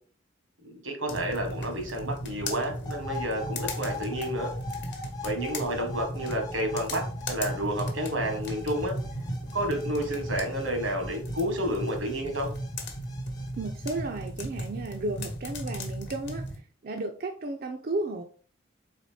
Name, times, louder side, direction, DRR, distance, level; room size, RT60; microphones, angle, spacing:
voice 1, 0.6-4.5 5.2-8.9 9.5-12.5, equal, 85° right, 4 dB, 1.3 m, -30 dB
sound 1, 1.1-16.6, equal, 60° left, 1.0 m, -36 dB
sound 2, 2.9-14.0, left 4 dB, 20° left, 0.6 m, -43 dB
voice 2, 13.6-16.4 16.8-18.2, right 2 dB, 50° right, 3 dB, 0.5 m, -33 dB
4.1 x 3.5 x 3.3 m, 0.43 s
head